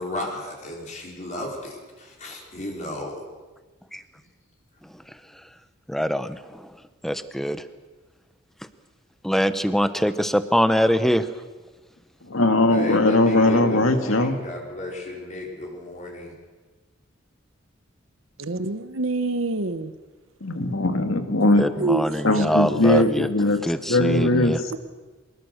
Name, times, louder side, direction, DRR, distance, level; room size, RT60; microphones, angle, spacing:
voice 1, 0.0-3.2 12.7-16.4, left 1 dB, 40° left, -1 dB, 4.3 m, -34 dB
voice 2, 4.8-5.4 5.9-7.6 9.2-11.3 21.5-23.3 23.6-24.6, equal, ahead, 11 dB, 0.9 m, -24 dB
voice 3, 12.3-14.4 20.4-21.6 22.2-23.6 23.9-24.7, left 2 dB, 85° left, 7 dB, 2.0 m, -20 dB
voice 4, 18.4-19.9 21.8-22.0 22.9-23.1, right 3 dB, 90° right, 11 dB, 1.1 m, -25 dB
23.5 x 21.0 x 6.6 m, 1.3 s
head